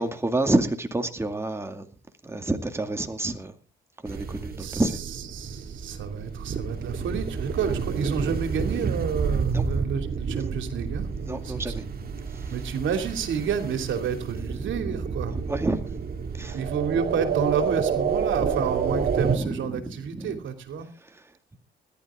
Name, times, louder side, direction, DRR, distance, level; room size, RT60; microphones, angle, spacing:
voice 1, 0.0-1.9 2.2-3.5 4.0-5.0 9.5-9.7 11.2-11.8 14.9-15.2 15.4-15.8 16.4-16.6 19.3-20.4, right 2 dB, 15° right, 2.3 m, -28 dB
sound 1, 4.1-19.4, right 6 dB, 50° right, 2.5 m, -29 dB
voice 2, 4.6-11.9 12.5-15.4 16.5-20.9, right 6 dB, 75° right, 2.9 m, -30 dB
20.5 x 12.0 x 3.7 m
cardioid pair, 90°, 20 cm